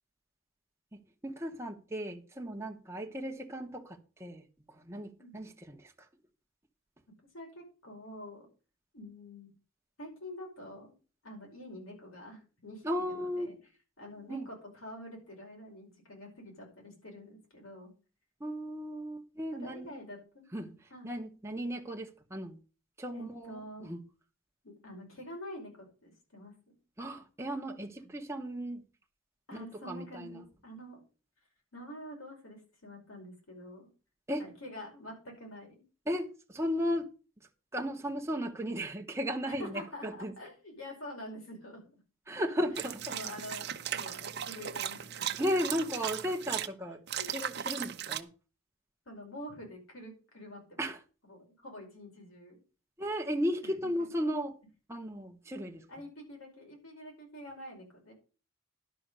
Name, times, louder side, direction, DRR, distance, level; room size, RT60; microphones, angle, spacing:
voice 1, 0.9-5.9 12.8-13.5 14.3-14.5 18.4-19.9 20.5-20.7 21.0-22.6 23.0-24.0 27.0-28.8 29.5-30.4 34.3-34.4 36.1-37.1 37.7-40.3 42.3-43.0 45.4-47.0 47.3-48.3 50.8-51.0 53.0-54.6 54.9-55.8, equal, 15° right, 0.9 m, -35 dB
voice 2, 7.3-8.5 8.9-9.5 10.0-10.9 11.2-13.6 14.0-17.9 19.5-20.5 20.9-21.1 23.1-23.9 24.6-26.8 29.5-31.0 31.7-33.9 34.4-35.7 39.5-41.8 42.7-45.6 47.2-47.4 49.0-50.8 51.2-52.6 53.6-54.1 55.9-58.1, left 1 dB, 85° left, 5.0 m, -47 dB
sound 1, 42.7-46.7 47.1-48.2, right 9 dB, 55° right, 0.7 m, -37 dB
11.0 x 5.8 x 6.6 m
head